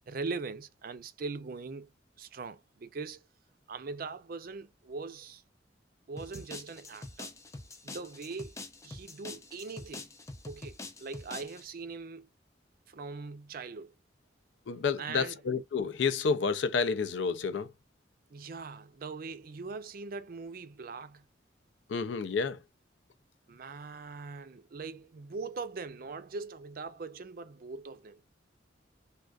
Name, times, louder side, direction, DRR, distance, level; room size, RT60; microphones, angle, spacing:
voice 1, 0.1-1.9 2.2-3.2 3.7-5.4 6.1-7.3 7.8-8.5 8.8-10.1 10.4-12.3 12.9-13.9 14.7-15.4 18.3-21.2 23.5-28.2, right 4 dB, 50° right, 0.5 m, -41 dB
sound 1, 6.2-11.6, left 2 dB, 15° left, 0.4 m, -45 dB
voice 2, 14.7-17.7 21.9-22.6, left 5 dB, 75° left, 0.4 m, -30 dB
3.6 x 2.3 x 2.3 m
head